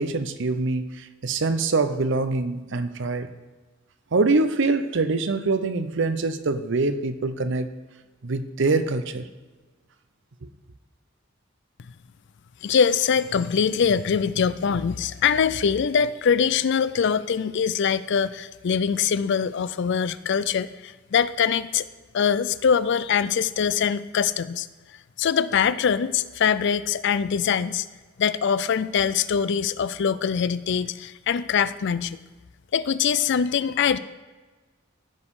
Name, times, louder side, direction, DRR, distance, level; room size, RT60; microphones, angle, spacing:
voice 1, 0.0-3.3 4.1-7.7 8.2-9.3 10.4-10.5, right 3 dB, 65° right, 0.7 m, -24 dB
voice 2, 12.6-21.9 22.1-24.7 25.2-27.9 28.2-32.2 32.7-34.0, left 7 dB, 60° left, 0.4 m, -23 dB
15.0 x 5.3 x 4.8 m
head